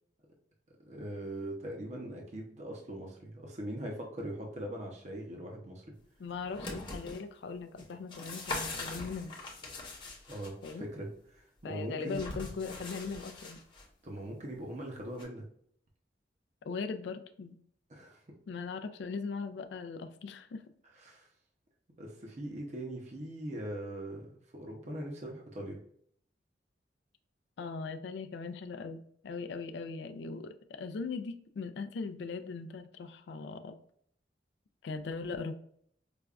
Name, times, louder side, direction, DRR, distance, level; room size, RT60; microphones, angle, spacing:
voice 1, 0.9-5.8 10.3-12.2 14.0-15.4 17.9-18.2 21.0-21.3 22.0-24.3 24.5-25.8, right 1 dB, 40° right, 0 dB, 0.6 m, -41 dB
voice 2, 6.2-9.3 10.6-10.9 11.6-13.6 16.7-17.6 18.5-20.6 27.6-33.8 34.8-35.6, left 4 dB, 75° left, 9 dB, 0.3 m, -39 dB
sound 1, 6.3-7.2 7.8-10.7 12.1-13.8 15.2-15.3, left 2 dB, 25° left, 0.8 m, -41 dB
5.0 x 2.3 x 2.3 m, 0.64 s
head